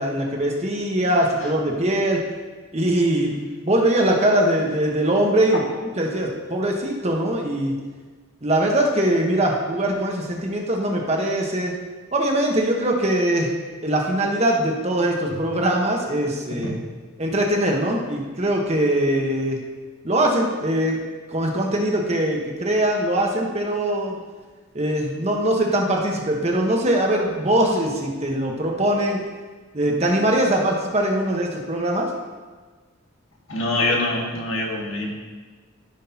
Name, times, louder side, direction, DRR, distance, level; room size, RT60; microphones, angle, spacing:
voice 1, 0.0-2.2 2.7-3.3 3.6-5.6 6.0-7.7 8.4-11.7 12.1-13.5 13.8-16.8 17.2-19.6 20.0-21.0 21.3-24.2 24.7-29.2 29.7-32.1, right 1 dB, 35° right, 0 dB, 1.1 m, -22 dB
voice 2, 33.5-35.1, left 2 dB, 80° left, -2 dB, 1.8 m, -24 dB
14.0 x 6.3 x 2.8 m, 1.4 s
head